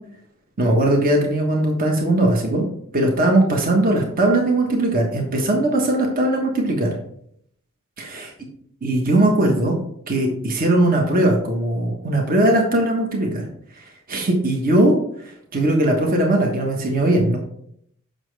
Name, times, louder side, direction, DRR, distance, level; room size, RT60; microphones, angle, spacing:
voice 1, 0.6-2.7 2.9-7.0 8.0-8.3 8.8-9.7 10.1-13.4 14.1-14.9 15.5-17.4, right 1 dB, 40° right, 1 dB, 1.3 m, -19 dB
7.2 x 6.4 x 3.4 m, 0.68 s
head